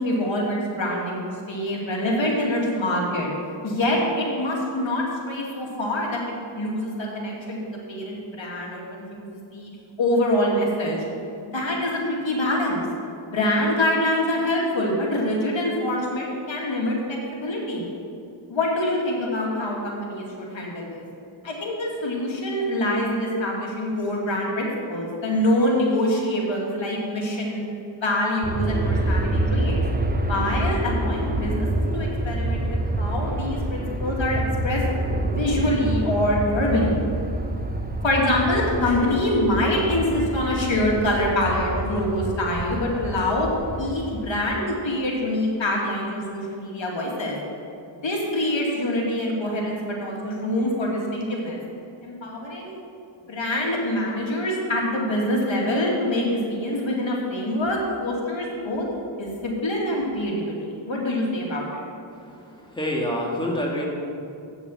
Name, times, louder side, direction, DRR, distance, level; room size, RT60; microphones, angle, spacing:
voice 1, 0.0-3.3 3.6-7.6 7.9-9.7 10.0-11.0 11.4-12.8 13.3-17.9 18.5-21.0 21.4-27.6 28.0-29.8 30.3-31.7 31.9-34.8 35.3-37.0 38.0-43.5 43.8-47.4 48.0-51.6 52.0-52.8 53.3-58.8 59.2-61.7, left 1 dB, 65° left, -2 dB, 2.2 m, -25 dB
Aircraft, 28.4-44.6, right 1 dB, 20° right, 0.9 m, -27 dB
voice 2, 62.1-63.9, equal, 10° left, -3 dB, 1.9 m, -28 dB
8.4 x 7.0 x 7.0 m, 2.6 s
cardioid pair, 65°, 49 cm